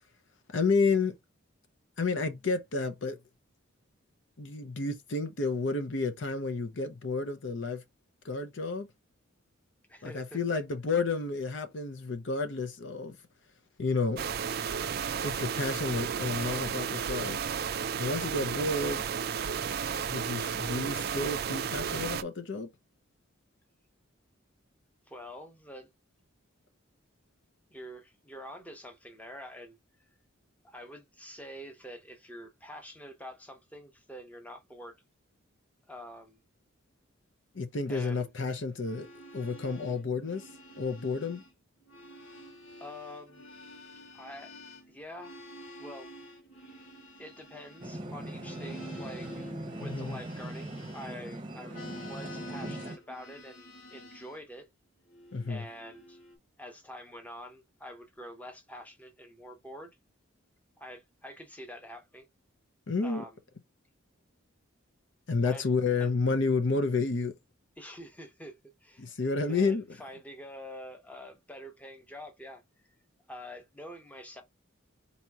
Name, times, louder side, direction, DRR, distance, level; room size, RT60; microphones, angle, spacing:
voice 1, 0.5-1.2 2.0-3.2 4.4-7.8 8.2-8.9 10.0-13.2 13.8-14.2 15.2-17.4 18.0-19.3 20.1-22.7 37.5-40.5 40.8-41.4 49.8-50.2 55.3-55.6 62.9-63.2 65.3-67.3 69.0-69.8, left 3 dB, 60° left, 0.7 m, -30 dB
voice 2, 9.9-10.4 25.1-25.9 27.7-29.8 30.6-35.0 35.9-36.4 37.9-38.3 42.8-43.4 44.1-44.5 44.9-45.4 45.8-46.1 47.2-51.7 52.0-54.7 55.5-56.2 56.6-60.0 60.8-62.3 63.0-63.4 65.4-65.6 66.0-66.1 67.8-69.1 69.4-72.6 73.3-74.4, equal, 5° left, 0.9 m, -46 dB
sound 1, 14.2-22.2, right 7 dB, 50° right, 0.4 m, -33 dB
sound 2, 38.7-41.5 41.8-51.3 51.6-54.4 55.1-56.3, equal, 75° left, 1.8 m, -49 dB
sound 3, 47.8-53.0, right 1 dB, 25° right, 0.8 m, -40 dB
4.2 x 3.0 x 3.5 m
head